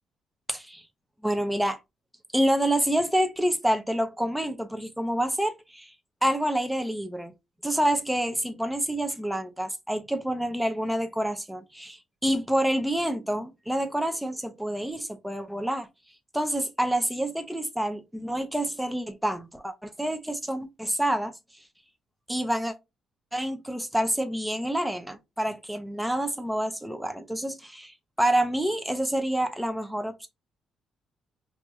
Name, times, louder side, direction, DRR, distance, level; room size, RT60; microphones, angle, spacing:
voice 1, 0.5-0.8 1.2-1.8 2.3-5.9 6.2-7.3 7.6-15.9 16.3-21.3 22.3-22.7 23.3-30.3, right 1 dB, 5° right, 0.6 m, -28 dB
4.7 x 2.6 x 2.4 m
cardioid pair, 90°, 0 cm